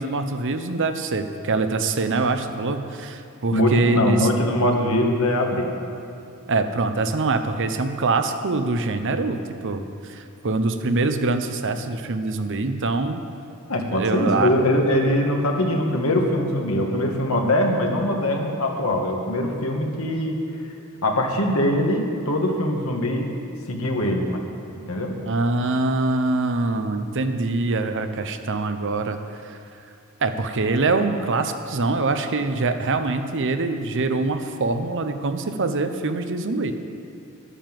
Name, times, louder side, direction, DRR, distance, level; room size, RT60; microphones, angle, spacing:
voice 1, 0.0-4.3 6.5-13.2 13.9-14.5 25.2-29.6 30.2-36.7, right 3 dB, 60° right, 8 dB, 0.8 m, -24 dB
voice 2, 3.5-5.7 13.7-20.4 21.0-23.3 23.7-24.4 24.9-25.2, left 1 dB, 75° left, 1 dB, 1.7 m, -22 dB
11.0 x 10.0 x 7.6 m, 2.6 s
head